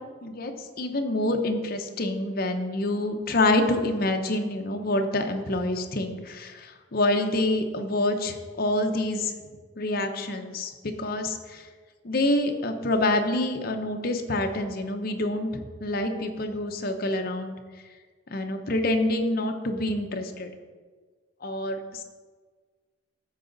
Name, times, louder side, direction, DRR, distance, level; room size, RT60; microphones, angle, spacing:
voice 1, 0.2-9.3 9.8-10.7 11.0-11.6 12.0-17.5 18.3-20.5 21.4-22.0, left 1 dB, 55° left, 5 dB, 0.8 m, -27 dB
13.0 x 4.9 x 3.9 m, 1.5 s
head